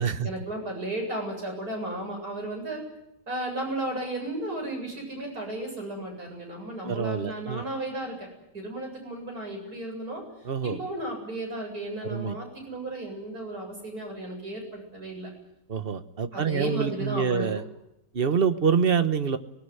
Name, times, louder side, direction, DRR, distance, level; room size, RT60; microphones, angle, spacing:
voice 1, 0.2-2.8 3.3-8.3 8.5-10.2 10.6-15.3 16.3-17.6, right 1 dB, 65° right, 1 dB, 8.7 m, -34 dB
voice 2, 6.8-7.6 10.4-10.8 12.0-12.4 15.7-17.6 18.1-19.4, right 6 dB, 40° right, 10 dB, 1.2 m, -26 dB
25.0 x 20.0 x 9.6 m, 0.84 s
omnidirectional pair, 1.8 m